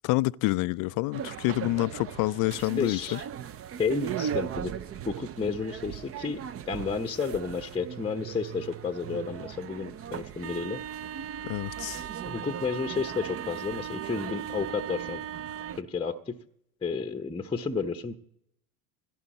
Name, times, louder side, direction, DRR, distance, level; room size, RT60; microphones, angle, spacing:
voice 1, 0.0-3.2 11.4-12.0, left 20 dB, 45° left, 0.4 m, -28 dB
sound 1, 1.1-15.8, right 9 dB, 30° right, 0.6 m, -37 dB
voice 2, 2.8-3.2 3.8-4.7 5.1-10.8 11.1-11.2 12.2-15.2 15.8-16.4 16.8-18.1, left 5 dB, 10° left, 0.8 m, -31 dB
16.5 x 14.0 x 4.2 m
hypercardioid pair, 80°, 47 cm